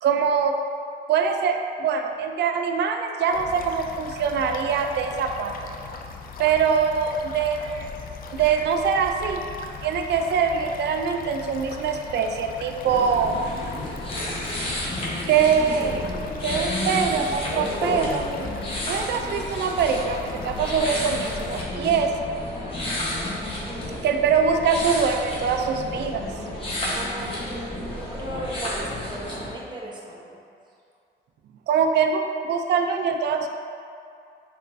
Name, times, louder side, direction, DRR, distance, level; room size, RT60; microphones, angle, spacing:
voice 1, 0.0-0.5 1.1-5.5 6.4-7.9 8.3-9.4 9.8-13.5 15.3-16.0 16.4-18.2 18.9-22.1 24.0-26.3 31.7-33.5, right 6 dB, 60° right, 5 dB, 0.4 m, -23 dB
sound 1, 3.3-21.6, left 5 dB, 45° left, 0.4 m, -39 dB
sound 2, 12.8-29.5, left 1 dB, 25° left, 1.1 m, -31 dB
voice 2, 23.7-24.0 26.9-30.4, right 1 dB, 20° right, -4 dB, 0.9 m, -36 dB
4.3 x 4.1 x 2.6 m, 2.4 s
cardioid pair, 90°, 20 cm